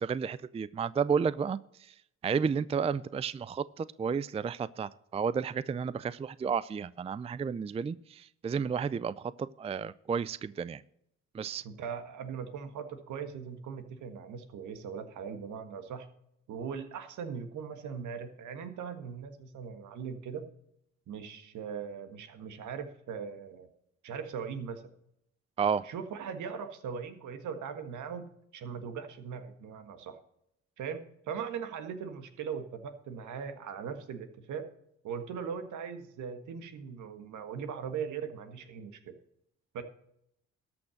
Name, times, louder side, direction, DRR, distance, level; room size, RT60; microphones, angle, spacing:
voice 1, 0.0-1.9 2.2-10.8 11.3-11.6 25.6-25.9, right 6 dB, 20° right, 0.4 m, -32 dB
voice 2, 11.6-16.1 16.5-20.4 21.1-23.7 24.0-24.8 25.8-30.2 30.8-34.6 35.0-39.1 39.7-39.8, right 6 dB, 70° right, 1.6 m, -40 dB
13.0 x 6.1 x 6.4 m
supercardioid pair, 60°, 31 cm